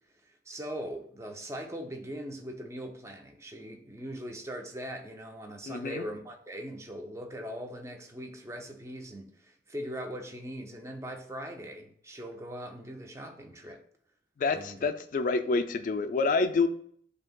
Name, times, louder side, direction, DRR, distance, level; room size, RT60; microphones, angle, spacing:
voice 1, 0.2-13.8 14.5-14.9, equal, 15° right, 0.5 m, -40 dB
voice 2, 5.7-6.1 14.4-16.7, left 4 dB, 45° left, 0.3 m, -27 dB
7.6 x 2.8 x 2.2 m
head